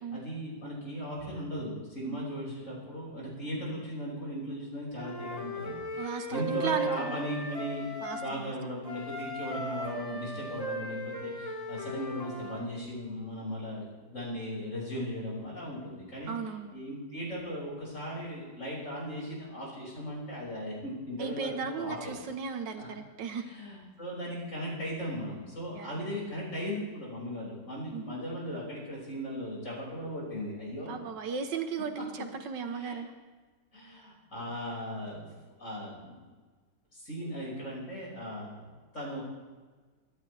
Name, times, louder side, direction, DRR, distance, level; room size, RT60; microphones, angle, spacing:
voice 1, 0.0-16.3 16.7-22.1 22.8-22.9 23.3-31.0 32.7-33.0 33.7-35.3 35.6-36.2 36.9-38.6 38.9-39.2, equal, 45° left, -4 dB, 6.3 m, -37 dB
Wind instrument woodwind instrument, 5.0-8.3 8.8-12.6, right 1 dB, 20° left, 2.0 m, -37 dB
voice 2, 6.0-7.3 8.0-8.5 16.3-16.7 21.2-23.5 25.7-26.0 27.9-28.1 30.9-33.1, right 5 dB, 80° right, 7 dB, 1.8 m, -36 dB
24.5 x 11.5 x 3.4 m, 1.4 s
omnidirectional pair, 1.9 m